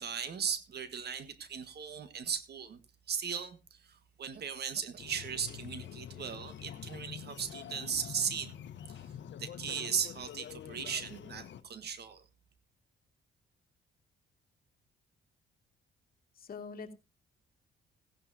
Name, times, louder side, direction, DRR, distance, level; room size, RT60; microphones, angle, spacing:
voice 1, 0.0-2.8 3.1-8.5 8.9-9.0 9.4-12.2, right 7 dB, 55° right, 1.6 m, -37 dB
sound 1, 5.0-11.6, left 9 dB, 65° left, 1.1 m, -46 dB
voice 2, 16.4-16.9, left 5 dB, 50° left, 2.2 m, -43 dB
16.5 x 11.0 x 2.8 m
cardioid pair, 90°, 20 cm